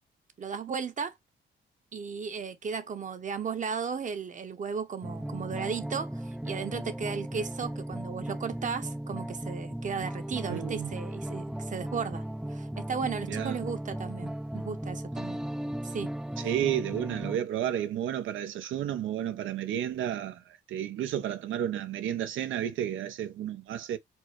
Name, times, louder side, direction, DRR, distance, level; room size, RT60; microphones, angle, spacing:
voice 1, 0.4-1.1 1.9-12.2 12.5-15.4 15.8-16.1, right 6 dB, 40° right, 0.9 m, -35 dB
sound 1, 5.0-17.4, right 1 dB, 5° right, 0.4 m, -36 dB
voice 2, 10.5-10.9 13.3-13.6 16.4-24.0, right 10 dB, 80° right, 0.7 m, -32 dB
4.5 x 2.1 x 4.4 m
cardioid pair, 90°, 20 cm